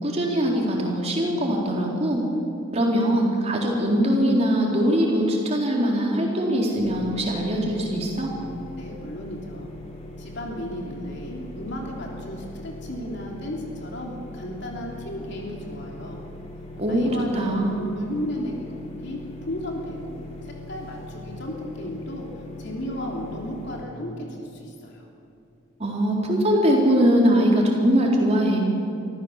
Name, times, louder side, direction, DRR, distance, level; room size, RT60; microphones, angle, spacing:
voice 1, 0.0-2.2 2.7-8.3 16.8-17.8 25.8-28.6, equal, 30° right, -2 dB, 4.0 m, -22 dB
sound 1, 6.8-23.8, left 2 dB, 35° left, 3.3 m, -40 dB
voice 2, 8.8-9.7 10.2-16.2 16.9-18.7 19.0-22.3 22.6-25.0, left 1 dB, 55° left, -1 dB, 3.3 m, -34 dB
24.0 x 14.5 x 7.5 m, 2.7 s
head